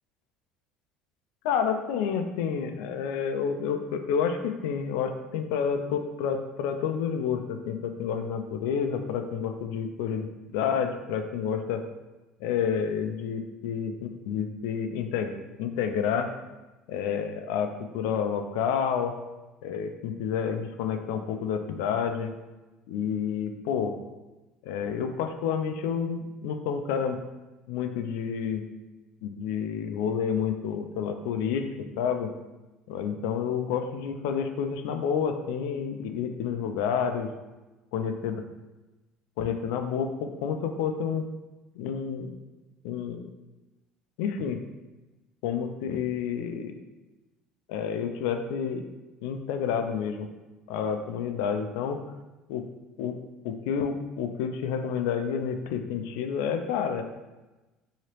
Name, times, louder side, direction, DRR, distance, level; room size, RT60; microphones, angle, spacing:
voice 1, 1.4-11.8 12.4-15.3 15.6-16.3 16.9-19.1 19.6-22.3 22.9-23.9 24.6-27.2 27.7-28.6 29.2-31.7 32.0-32.3 32.9-37.3 37.9-38.4 39.4-41.2 41.8-42.3 42.8-43.3 44.2-44.6 45.4-46.7 47.7-48.8 49.2-50.3 50.7-52.0 52.5-52.6 53.0-53.1 53.4-57.0, left 7 dB, 85° left, 6 dB, 0.3 m, -29 dB
3.1 x 2.8 x 2.9 m, 1.1 s
cardioid pair, 140°, 0 cm